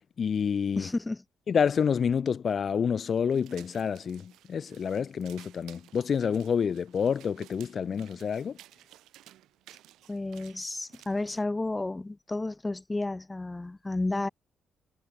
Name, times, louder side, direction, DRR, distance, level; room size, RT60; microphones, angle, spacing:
voice 1, 0.2-0.9 1.5-8.6, left 7 dB, 50° left, 0.3 m, -28 dB
voice 2, 0.8-1.2 10.1-14.3, left 2 dB, 15° left, 0.7 m, -32 dB
sound 1, 3.3-11.4, right 14 dB, 85° right, 1.7 m, -55 dB
cardioid pair, 90°, 0 cm